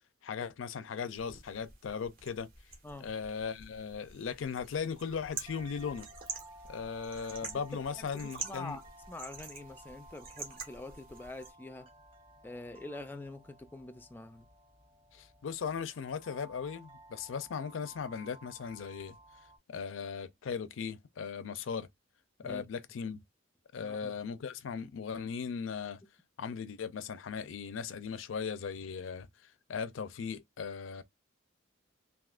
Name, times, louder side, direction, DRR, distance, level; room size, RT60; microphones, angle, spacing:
voice 1, 0.2-2.5 3.0-6.1 6.7-8.8 15.1-19.2 19.7-21.9 22.4-23.2 23.7-26.0 26.4-29.3 29.7-31.0, left 6 dB, 75° left, 0.4 m, -38 dB
sound 1, 1.1-11.5, right 5 dB, 50° right, 1.2 m, -47 dB
sound 2, 5.1-19.6, right 1 dB, 30° right, 0.8 m, -55 dB
voice 2, 8.4-8.8 9.1-11.9 12.4-14.4 22.4-22.6 23.8-24.1, left 2 dB, 10° left, 0.3 m, -45 dB
3.5 x 2.7 x 2.4 m
head